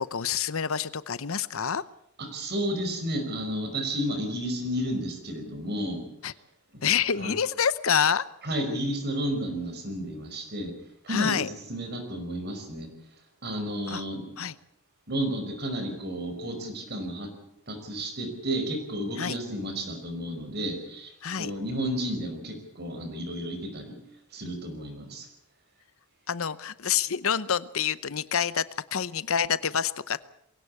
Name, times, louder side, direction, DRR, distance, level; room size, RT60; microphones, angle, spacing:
voice 1, 0.0-1.8 6.2-6.3 6.8-8.2 11.1-11.5 13.9-14.0 14.4-14.5 19.2-19.4 21.2-21.5 26.3-30.2, left 7 dB, 65° left, 17 dB, 0.8 m, -27 dB
voice 2, 2.2-6.0 6.7-6.8 7.1-7.3 8.4-10.7 11.0-12.9 13.4-14.2 15.1-17.3 17.7-24.0 24.3-25.3, equal, 45° right, 6 dB, 5.1 m, -32 dB
23.0 x 17.0 x 8.4 m, 0.73 s
head